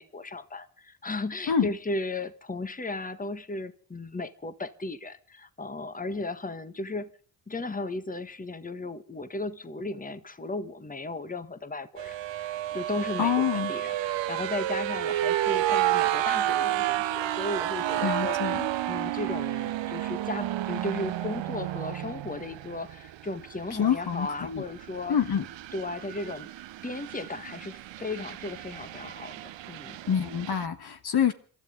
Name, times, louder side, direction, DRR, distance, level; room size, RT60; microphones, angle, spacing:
voice 1, 0.0-7.1 7.5-18.4 18.9-25.2 25.7-26.5 26.8-30.0, left 2 dB, 15° left, 1.6 m, -35 dB
sound 1, 12.0-30.7, right 13 dB, 65° right, 1.0 m, -31 dB
voice 2, 13.2-13.7 18.0-18.7 23.8-24.6 25.1-25.4 30.1-31.3, left 8 dB, 50° left, 1.5 m, -26 dB
28.0 x 13.0 x 3.8 m
hypercardioid pair, 45°, 49 cm